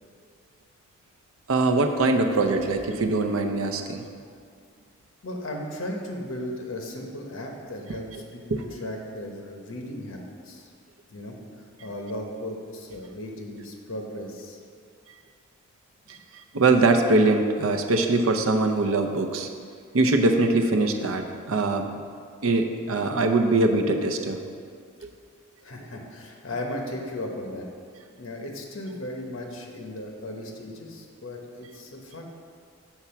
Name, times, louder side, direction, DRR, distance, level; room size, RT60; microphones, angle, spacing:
voice 1, 1.5-4.0 8.5-8.6 16.1-16.2 16.5-19.5 19.9-21.9 22.4-24.4, right 2 dB, 80° right, 4 dB, 0.6 m, -22 dB
voice 2, 5.2-10.7 11.1-11.4 11.8-14.6 16.0-16.1 25.6-27.7 28.2-32.2, left 1 dB, 70° left, 1 dB, 1.1 m, -36 dB
7.1 x 4.4 x 5.7 m, 2.2 s
head